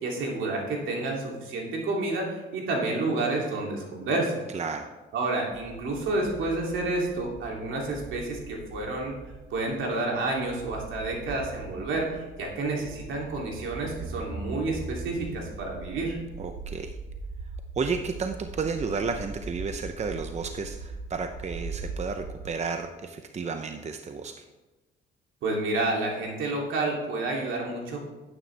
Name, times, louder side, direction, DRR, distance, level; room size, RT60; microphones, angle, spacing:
voice 1, 0.0-4.4 5.1-9.1 9.5-16.2 25.4-28.1, right 2 dB, 80° right, -1 dB, 2.9 m, -29 dB
voice 2, 4.5-4.9 16.4-16.9 17.8-24.4, right 5 dB, 35° right, 6 dB, 0.7 m, -32 dB
sound 1, 5.5-22.5, right 3 dB, 55° right, 1.6 m, -41 dB
11.0 x 9.1 x 3.4 m, 1.2 s
cardioid pair, 90°, 20 cm